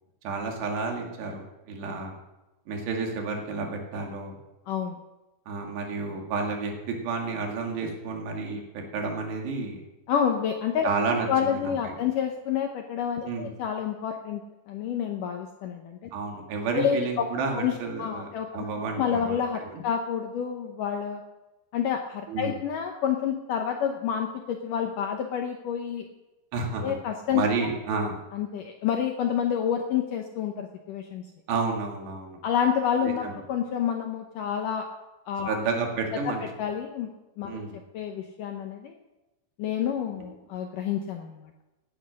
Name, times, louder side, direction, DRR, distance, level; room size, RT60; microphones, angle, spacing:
voice 1, 0.2-2.1 2.7-4.4 5.5-9.8 10.8-12.0 13.2-13.5 16.1-19.8 22.3-22.6 26.5-26.9 27.3-28.2 31.5-32.4 33.0-33.4 35.4-36.4 37.5-37.8, right 4 dB, 70° right, 2 dB, 4.2 m, -31 dB
voice 2, 4.7-5.0 10.1-10.9 11.3-14.4 14.7-16.1 16.7-17.3 17.6-18.7 19.0-21.2 21.7-26.1 26.8-27.7 28.3-31.2 32.4-34.9 35.3-35.6 36.2-37.1 37.4-37.7 37.9-39.0 39.6-41.5, left 8 dB, 90° left, 4 dB, 1.8 m, -29 dB
17.5 x 9.8 x 6.5 m, 1.0 s
omnidirectional pair, 5.2 m